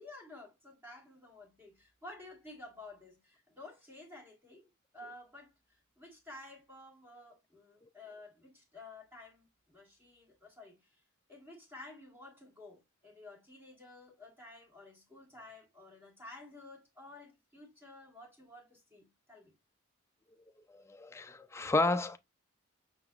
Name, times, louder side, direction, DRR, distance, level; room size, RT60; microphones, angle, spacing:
voice 1, 0.0-11.0 11.3-19.5, left 2 dB, 10° right, 1.6 m, -52 dB
voice 2, 20.7-22.2, left 2 dB, 10° left, 0.3 m, -31 dB
5.7 x 3.8 x 2.3 m
head